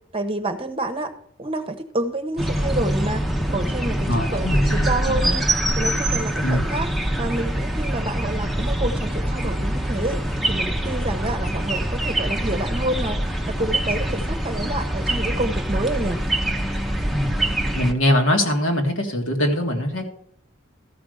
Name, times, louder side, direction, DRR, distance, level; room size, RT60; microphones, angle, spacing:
voice 1, 0.1-1.1 1.4-3.2 3.5-5.4 5.8-6.9 7.2-10.2 10.5-13.2 13.5-16.2, right 2 dB, 30° right, 8 dB, 0.9 m, -28 dB
sound 1, 2.4-17.9, right 1 dB, ahead, 0.8 m, -24 dB
voice 2, 4.1-5.3 6.4-6.6 17.1-17.3 17.7-20.1, left 1 dB, 75° left, 2 dB, 2.0 m, -22 dB
13.5 x 5.2 x 6.5 m, 0.65 s
head